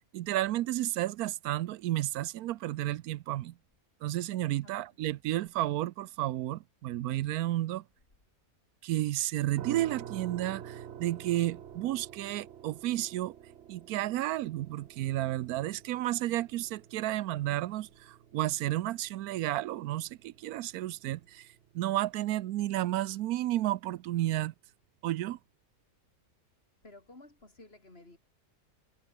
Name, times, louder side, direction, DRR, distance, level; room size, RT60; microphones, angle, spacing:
voice 1, 0.1-3.5 4.0-7.8 8.8-13.3 13.7-21.5 21.7-24.5 25.0-25.4, right 15 dB, 90° right, 1.1 m, -32 dB
sound 1, 9.6-22.4, right 9 dB, 55° right, 1.0 m, -49 dB
voice 2, 26.8-28.2, left 2 dB, 40° left, 4.5 m, -53 dB
omnidirectional pair, 1.5 m